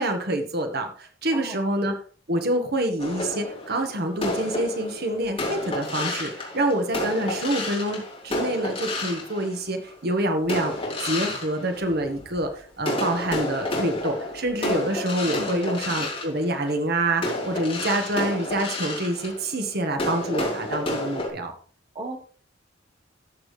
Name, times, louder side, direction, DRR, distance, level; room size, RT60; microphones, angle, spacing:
voice 1, 0.0-1.9 2.3-10.7 11.0-21.5, right 1 dB, 55° right, 5 dB, 1.5 m, -26 dB
voice 2, 1.3-1.6 15.3-15.6 21.9-22.2, right 1 dB, 30° right, 2 dB, 1.4 m, -36 dB
sound 1, 3.0-9.9 10.4-12.4 12.8-21.3, left 2 dB, 30° left, 3.6 m, -30 dB
13.5 x 7.2 x 3.3 m, 0.44 s
head